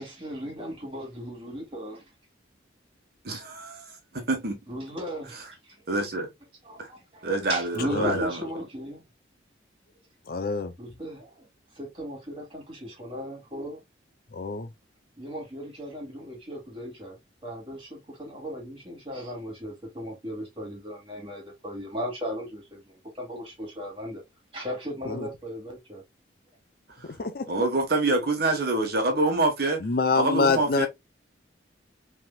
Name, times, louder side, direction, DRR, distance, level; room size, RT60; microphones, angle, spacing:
voice 1, 0.0-2.0 4.7-5.8 6.6-9.0 10.8-11.5 11.7-13.8 15.2-17.2 17.4-24.2 24.5-26.0, equal, 25° right, 2.5 m, -37 dB
voice 2, 3.2-4.0 4.3-4.6 5.9-6.3 6.8-6.9 7.2-8.3 27.0-27.2 27.5-29.8 30.1-30.9, right 2 dB, 55° right, 1.3 m, -26 dB
voice 3, 10.3-10.7 14.3-14.7 25.1-25.3 27.2-27.4 29.8-30.9, left 4 dB, 50° left, 0.5 m, -25 dB
5.5 x 3.5 x 2.3 m
head